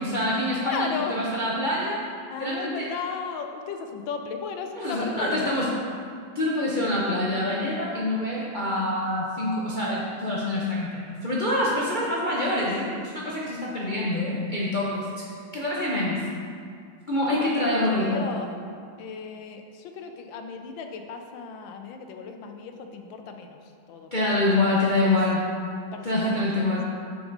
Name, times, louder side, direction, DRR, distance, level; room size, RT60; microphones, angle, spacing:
voice 1, 0.0-2.0 2.4-2.9 4.8-5.7 6.3-10.9 11.2-15.2 15.5-16.2 17.1-18.4 24.1-25.5 26.0-26.8, left 1 dB, 50° left, -7 dB, 0.5 m, -26 dB
voice 2, 0.7-1.1 2.3-5.5 17.4-18.5 19.0-23.6 23.9-24.3 24.6-25.2 25.9-26.8, left 5 dB, 90° left, 5 dB, 1.4 m, -35 dB
7.1 x 6.0 x 3.9 m, 2.2 s
omnidirectional pair, 2.0 m